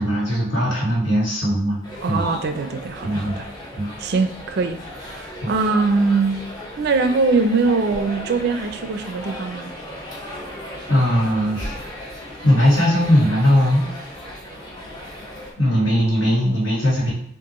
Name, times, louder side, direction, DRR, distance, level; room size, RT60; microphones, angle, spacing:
voice 1, 0.0-1.8 2.1-2.2 3.0-3.4 3.7-3.9 5.4-5.5 10.9-11.7 12.4-13.9 15.6-17.1, equal, 80° left, -5 dB, 1.7 m, -19 dB
sound 1, 1.8-15.5, left 1 dB, 20° left, 0.9 m, -36 dB
voice 2, 2.0-3.4 4.0-4.8 5.0-6.4 6.8-9.7, right 4 dB, 55° right, 8 dB, 0.4 m, -22 dB
6.0 x 2.5 x 2.9 m, 0.67 s
head